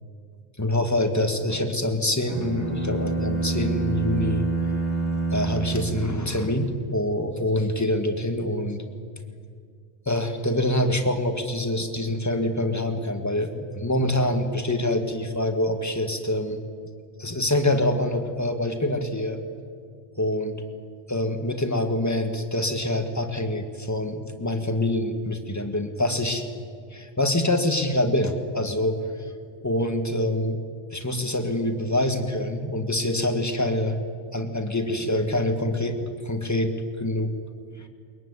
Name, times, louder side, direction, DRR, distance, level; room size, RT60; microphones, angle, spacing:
voice 1, 0.6-4.4 5.3-8.8 10.1-16.6 17.2-19.4 20.2-20.6 21.1-26.4 26.9-29.0 29.6-30.6 30.9-34.0 34.3-36.0 36.2-37.3 37.8-37.9, left 1 dB, 15° left, 6 dB, 1.9 m, -25 dB
sound 1, 2.3-6.6, right 4 dB, 35° right, 3.2 m, -27 dB
22.5 x 22.0 x 9.9 m, 2.2 s
omnidirectional pair, 1.2 m